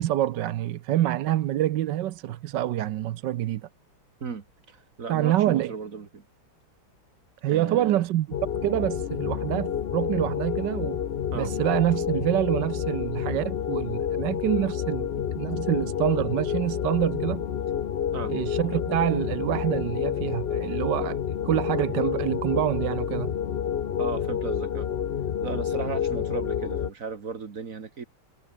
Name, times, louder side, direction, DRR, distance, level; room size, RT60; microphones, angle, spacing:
voice 1, 0.0-3.6 5.1-5.7 7.4-8.3 8.6-11.0 11.3-15.1 15.4-17.4 18.3-21.2 21.4-23.3, right 13 dB, 70° right, 1.3 m, -26 dB
voice 2, 4.2-6.2 7.5-8.0 11.3-11.5 18.1-18.3 24.0-24.9 25.4-28.0, right 5 dB, 45° right, 1.9 m, -35 dB
sound 1, 8.3-26.9, left 8 dB, 65° left, 0.6 m, -29 dB
omnidirectional pair, 2.1 m